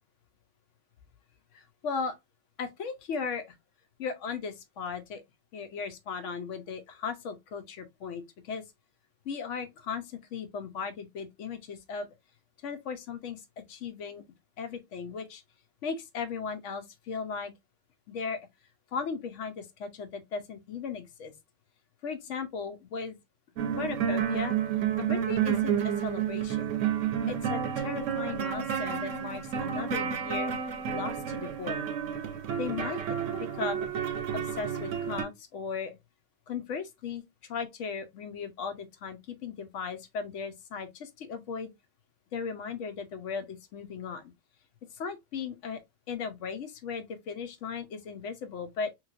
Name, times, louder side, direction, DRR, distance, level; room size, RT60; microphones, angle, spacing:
voice 1, 1.5-2.2 2.6-3.5 4.0-5.2 5.5-8.6 9.2-12.1 12.6-14.2 14.6-15.4 15.8-17.5 18.1-18.4 18.9-21.3 22.0-23.2 23.7-24.6 25.0-26.8 27.3-30.5 30.9-31.9 32.6-33.0 33.3-33.9 34.3-36.0 36.5-41.7 42.3-44.3 44.9-45.8 46.1-48.9, left 5 dB, 75° left, 1.0 m, -37 dB
sound 1, 23.6-35.3, right 8 dB, 75° right, 1.0 m, -30 dB
3.1 x 3.1 x 2.4 m
omnidirectional pair, 1.3 m